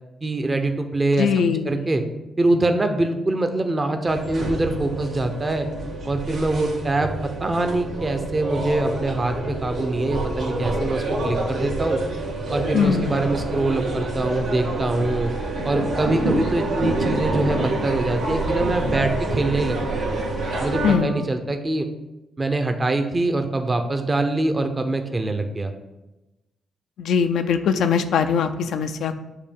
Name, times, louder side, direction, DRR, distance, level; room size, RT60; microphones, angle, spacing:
voice 1, 0.2-2.0 2.4-5.7 6.0-7.1 7.4-12.0 12.5-15.3 15.6-20.2 20.6-21.9 22.4-25.7, right 2 dB, 30° right, 6 dB, 0.7 m, -24 dB
voice 2, 1.2-1.8 12.7-13.2 20.8-21.2 27.0-29.1, left 6 dB, 80° left, 9 dB, 0.4 m, -21 dB
sound 1, 4.1-21.0, right 2 dB, 85° right, 1.6 m, -27 dB
6.7 x 2.7 x 5.2 m, 1.0 s
supercardioid pair, 60°, 0 cm